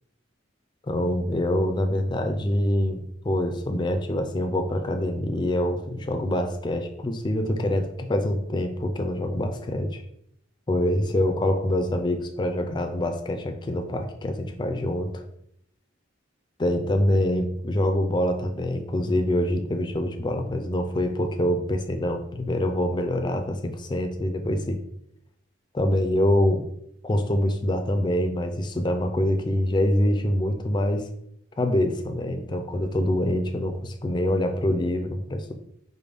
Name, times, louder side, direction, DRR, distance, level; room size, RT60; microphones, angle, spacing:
voice 1, 0.9-10.0 10.7-15.2 16.6-24.8 25.7-26.6 27.0-31.1 31.6-35.5, left 1 dB, 25° left, 5 dB, 0.4 m, -25 dB
5.0 x 2.2 x 3.4 m, 0.73 s
head